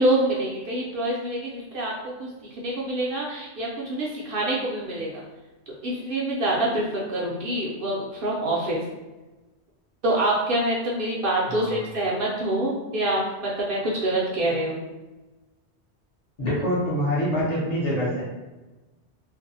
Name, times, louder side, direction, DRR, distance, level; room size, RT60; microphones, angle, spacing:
voice 1, 0.0-5.2 5.7-8.8 10.0-14.8, right 1 dB, 60° right, -4 dB, 0.6 m, -26 dB
voice 2, 11.5-11.9 16.4-18.2, equal, 45° left, -7 dB, 0.7 m, -25 dB
2.5 x 2.0 x 2.6 m, 1.1 s
omnidirectional pair, 1.2 m